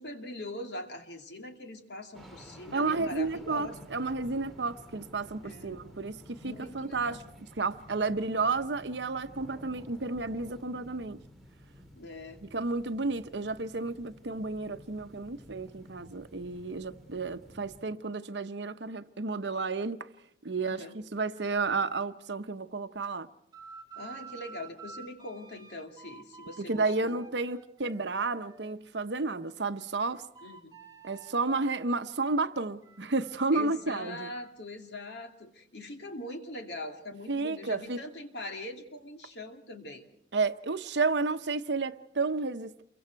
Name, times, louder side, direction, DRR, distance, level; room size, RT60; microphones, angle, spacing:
voice 1, 0.0-3.9 5.4-5.8 6.4-7.2 8.1-8.2 11.9-12.4 20.6-20.9 24.0-27.2 30.4-30.8 33.5-40.0, left 1 dB, 65° left, 2.5 m, -42 dB
sound 1, 2.1-17.8, equal, ahead, 2.6 m, -52 dB
voice 2, 2.7-7.2 7.6-11.2 12.4-20.1 20.4-23.3 26.7-30.2 31.0-34.3 37.3-38.0 40.3-42.8, right 3 dB, 70° right, 0.9 m, -32 dB
sound 2, 23.5-28.8 29.2-34.5, right 5 dB, 20° right, 1.6 m, -51 dB
28.5 x 23.0 x 4.6 m
head